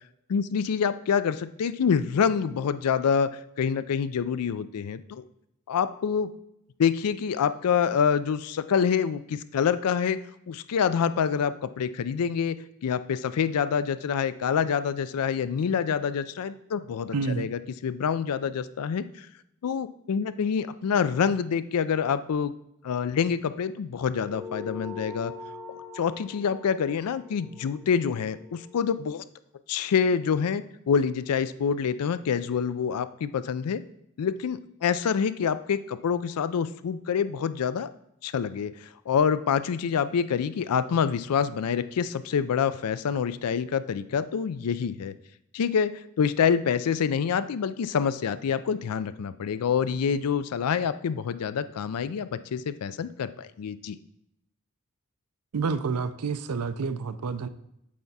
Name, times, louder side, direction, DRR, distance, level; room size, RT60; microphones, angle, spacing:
voice 1, 0.3-3.3 3.6-5.2 5.7-6.3 6.8-10.2 10.5-12.6 12.8-19.3 19.6-22.5 22.8-25.3 25.9-29.2 29.7-33.8 34.2-37.9 38.2-45.1 45.5-54.0, left 7 dB, 80° left, 14 dB, 0.4 m, -26 dB
voice 2, 17.1-17.5 55.5-57.5, right 5 dB, 80° right, 12 dB, 0.5 m, -29 dB
sound 1, 24.2-29.1, left 4 dB, 5° right, 0.5 m, -43 dB
8.5 x 3.4 x 4.1 m, 0.81 s
head